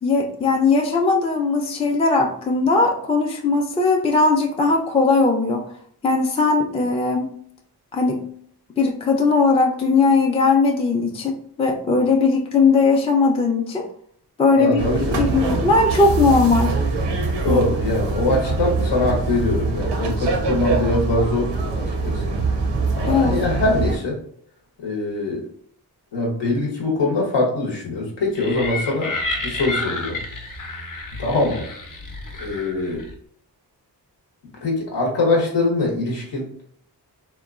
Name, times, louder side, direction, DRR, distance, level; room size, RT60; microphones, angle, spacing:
voice 1, 0.0-5.6 6.0-7.3 7.9-8.2 8.8-13.9 14.4-14.9 15.2-16.7 17.5-17.6 23.1-23.4, left 3 dB, 15° left, 1 dB, 0.4 m, -19 dB
voice 2, 14.6-15.6 17.4-22.2 23.0-24.2 24.8-25.5 26.1-30.2 31.2-31.6 32.4-33.1 34.6-36.4, left 2 dB, 85° left, -1 dB, 0.9 m, -23 dB
sound 1, 14.8-24.0, right 3 dB, 90° right, 0.5 m, -23 dB
sound 2, 28.3-33.2, left 2 dB, 50° left, 0.7 m, -30 dB
2.9 x 2.1 x 2.4 m, 0.63 s
cardioid pair, 45°, 42 cm